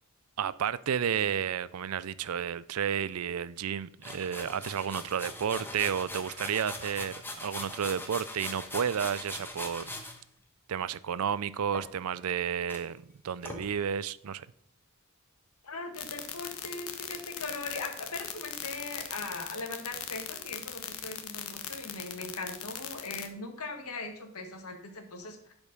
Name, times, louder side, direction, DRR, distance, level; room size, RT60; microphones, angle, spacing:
voice 1, 0.4-9.9 10.7-14.5, right 8 dB, 75° right, 18 dB, 0.4 m, -32 dB
sound 1, 4.0-10.2 11.7-12.3 12.7-12.8 13.4-13.6, left 2 dB, 10° left, 1.2 m, -41 dB
voice 2, 15.6-25.5, left 3 dB, 90° left, 5 dB, 1.7 m, -40 dB
sound 2, 15.9-23.3, left 10 dB, 65° left, 1.1 m, -39 dB
11.0 x 5.3 x 5.3 m, 0.66 s
head